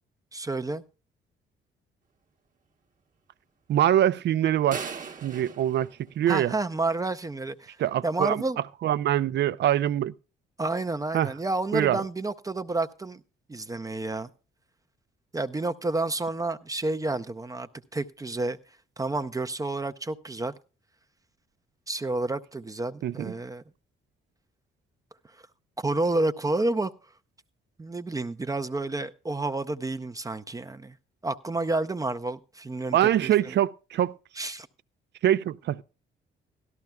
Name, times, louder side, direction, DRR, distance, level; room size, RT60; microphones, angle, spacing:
voice 1, 0.3-0.8 6.3-7.8 8.0-8.6 10.6-13.2 13.5-14.3 15.3-18.6 19.0-20.5 21.9-23.6 25.8-26.9 27.8-30.9 31.2-33.6 34.4-34.7, right 2 dB, 15° right, 0.6 m, -30 dB
voice 2, 3.7-4.8 5.2-6.5 7.8-8.4 8.8-10.1 11.1-11.3 11.7-12.0 23.0-23.3 32.9-34.5 35.2-35.8, right 11 dB, 60° right, 0.5 m, -24 dB
sound 1, 4.7-6.9, right 6 dB, 40° right, 1.1 m, -39 dB
17.0 x 13.0 x 2.3 m
cardioid pair, 90°, 20 cm